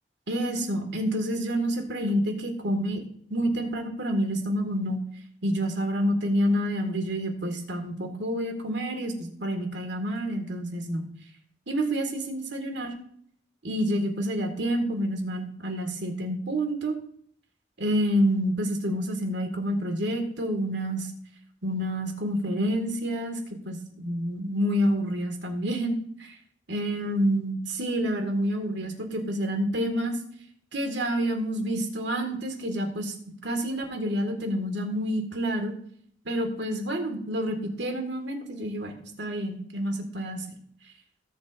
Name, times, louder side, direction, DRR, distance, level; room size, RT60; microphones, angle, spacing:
voice 1, 0.3-3.0 3.3-5.0 5.4-11.1 11.7-12.9 13.6-17.0 17.8-21.1 21.6-23.4 23.6-26.3 26.7-30.1 30.7-33.1 33.4-35.7 36.3-38.9 39.2-40.4, equal, 80° right, 4 dB, 2.0 m, -28 dB
18.0 x 7.5 x 2.6 m, 0.66 s
head